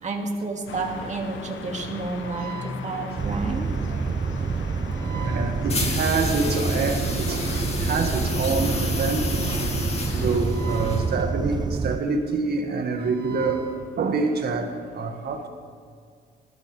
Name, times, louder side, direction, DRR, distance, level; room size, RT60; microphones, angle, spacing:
voice 1, 0.0-3.7, right 3 dB, 35° right, 1 dB, 2.2 m, -30 dB
sound 1, 0.7-10.4, left 5 dB, 75° left, 1.1 m, -39 dB
voice 2, 2.3-2.7 5.0-7.0 7.3-9.5 10.1-13.7 14.0-14.7 14.9-15.5, right 4 dB, 55° right, 4 dB, 1.9 m, -26 dB
sound 2, 3.2-12.0, right 5 dB, 20° right, 0.4 m, -28 dB
sound 3, 5.7-11.3, left 2 dB, 30° left, 2.4 m, -30 dB
19.5 x 13.0 x 3.4 m, 2.1 s
cardioid pair, 90°, 20 cm